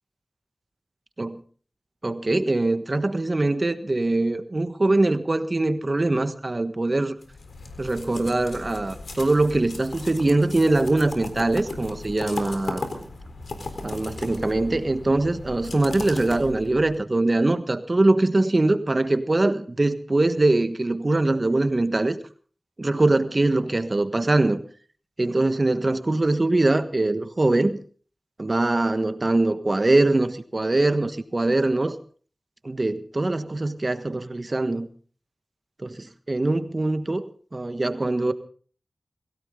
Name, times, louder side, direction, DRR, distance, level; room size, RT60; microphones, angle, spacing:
voice 1, 2.0-7.2 7.8-12.8 13.8-22.2 22.8-24.6 25.2-27.8 28.4-32.0 32.6-34.9 35.8-37.2 37.5-38.3, right 2 dB, 45° right, 11 dB, 1.4 m, -22 dB
sound 1, 7.2-17.0, left 2 dB, 85° left, 3.9 m, -37 dB
23.0 x 16.5 x 3.8 m, 0.43 s
cardioid pair, 40°, 0 cm